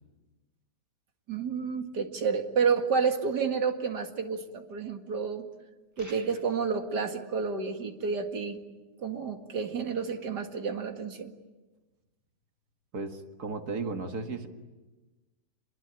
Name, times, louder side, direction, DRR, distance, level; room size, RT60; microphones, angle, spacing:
voice 1, 1.3-5.5 6.0-8.6 9.0-11.3, right 5 dB, 80° right, 5 dB, 2.6 m, -30 dB
sound 1, 6.0-6.7, right 1 dB, 10° right, 1.5 m, -51 dB
voice 2, 12.9-14.5, right 3 dB, 65° right, 5 dB, 2.4 m, -35 dB
28.5 x 21.5 x 9.1 m, 1.2 s
omnidirectional pair, 1.8 m